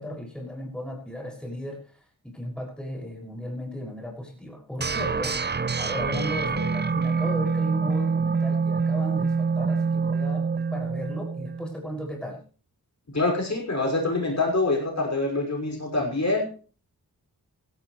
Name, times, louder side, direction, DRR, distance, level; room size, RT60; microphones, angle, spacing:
voice 1, 0.0-5.5 5.8-12.4, equal, ahead, -1 dB, 6.6 m, -35 dB
sound 1, 4.8-11.7, right 5 dB, 30° right, 0.6 m, -26 dB
voice 2, 13.1-16.5, left 2 dB, 45° left, 0 dB, 6.1 m, -25 dB
16.5 x 16.0 x 3.3 m, 0.38 s
cardioid pair, 55°, 38 cm